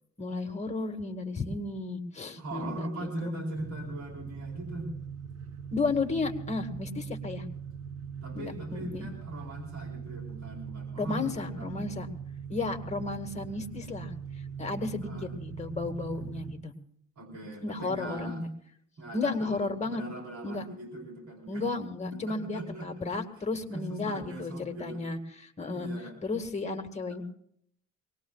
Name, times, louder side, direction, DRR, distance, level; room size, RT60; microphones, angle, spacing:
voice 1, 0.2-3.3 5.7-7.5 8.3-9.1 11.0-12.1 12.5-14.1 14.6-16.7 17.6-18.5 19.1-20.0 20.4-20.6 21.5-25.9 26.2-27.2, left 3 dB, 25° left, 6 dB, 1.9 m, -33 dB
voice 2, 2.4-4.9 8.2-11.8 15.0-15.3 17.2-18.4 19.0-21.6 22.1-22.9 23.7-25.0 25.7-26.1, right 1 dB, 70° right, -1 dB, 4.2 m, -40 dB
sound 1, 3.5-16.5, right 6 dB, 85° right, 3.8 m, -41 dB
24.0 x 19.5 x 2.4 m, 0.68 s
cardioid pair, 90°, 30 cm